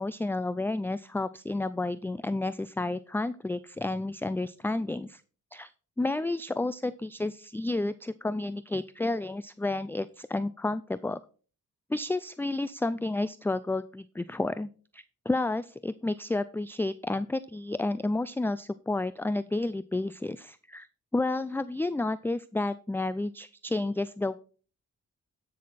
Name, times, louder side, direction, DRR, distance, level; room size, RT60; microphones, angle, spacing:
voice 1, 0.0-5.2 5.5-5.7 6.0-11.2 11.9-20.9 21.1-24.4, left 2 dB, 5° left, 16 dB, 0.4 m, -31 dB
13.5 x 6.2 x 4.2 m, 0.39 s
cardioid pair, 60°, 33 cm